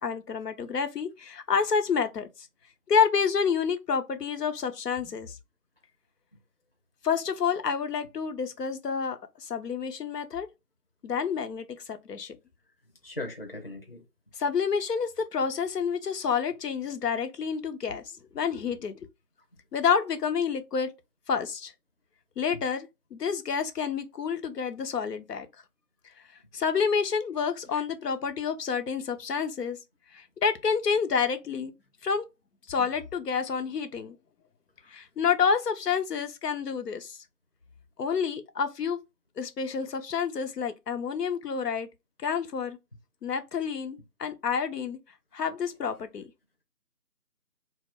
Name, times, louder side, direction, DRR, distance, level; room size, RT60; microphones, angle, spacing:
voice 1, 0.0-2.5 2.9-5.4 7.0-10.5 11.0-12.4 14.3-18.0 18.3-18.9 19.7-20.9 21.3-21.7 22.4-25.5 26.5-29.8 30.1-31.7 32.0-32.3 32.7-34.1 34.9-37.2 38.0-39.0 39.4-41.9 42.2-42.8 43.2-45.0 45.3-46.3, left 6 dB, 85° left, 0.6 m, -29 dB
voice 2, 13.0-14.0 27.7-27.8, left 1 dB, 40° left, 0.5 m, -38 dB
2.1 x 2.1 x 3.4 m
figure-of-eight pair, 165°, 47 cm